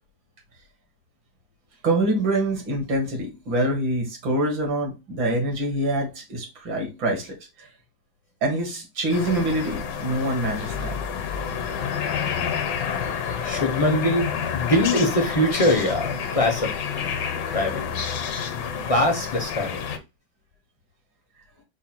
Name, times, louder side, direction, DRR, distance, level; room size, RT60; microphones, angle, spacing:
voice 1, 1.8-7.7 8.4-11.0, right 1 dB, 80° right, 2.3 m, -25 dB
sound 1, 9.1-20.0, left 7 dB, 70° left, 1.4 m, -29 dB
voice 2, 13.4-16.7 17.5-17.9 18.9-19.8, left 1 dB, 40° left, 0.4 m, -22 dB
4.8 x 2.3 x 4.3 m
omnidirectional pair, 2.1 m